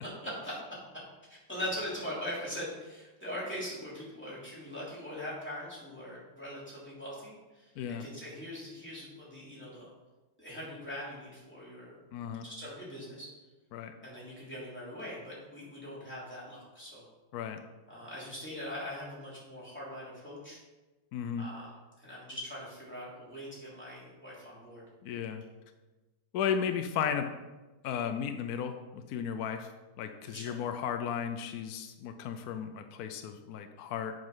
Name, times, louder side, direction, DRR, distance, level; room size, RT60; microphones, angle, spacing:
voice 1, 0.0-0.8 1.5-7.7 8.0-9.9 10.4-12.0 12.4-13.3 14.0-17.0 17.9-20.6 21.4-21.7 22.0-24.8 30.2-30.6, equal, 5° left, -8 dB, 3.0 m, -41 dB
voice 2, 7.8-8.1 12.1-12.4 13.7-13.9 17.3-17.6 21.1-21.5 25.0-25.4 26.3-27.3 27.8-29.7 30.0-34.1, left 8 dB, 75° left, 7 dB, 0.8 m, -34 dB
7.8 x 5.5 x 5.5 m, 1.1 s
omnidirectional pair, 2.3 m